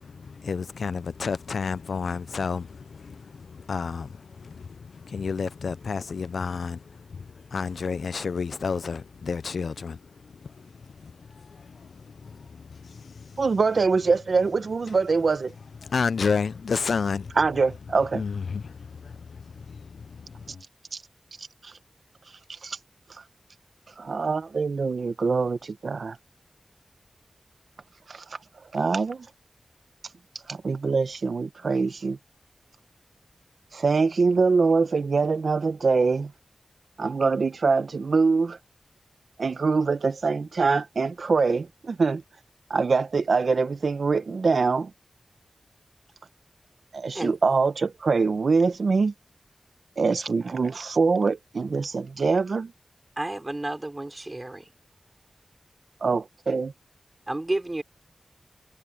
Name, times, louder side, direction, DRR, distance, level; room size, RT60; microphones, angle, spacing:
voice 1, 0.0-6.8 7.2-7.3 7.5-10.0 11.0-12.6 12.9-13.2 15.8-17.3 18.1-20.1, left 5 dB, 85° left, 0.5 m, -31 dB
voice 2, 13.4-15.5 17.4-18.2 22.6-22.8 24.0-26.2 28.7-29.3 30.5-32.2 33.7-36.3 37.0-38.6 39.4-42.2 42.7-44.9 46.9-49.1 50.0-52.7 56.0-56.7, right 4 dB, 75° right, 1.1 m, -24 dB
voice 3, 53.2-54.6 57.3-57.8, right 2 dB, 30° right, 4.8 m, -31 dB
cardioid pair, 50°, 0 cm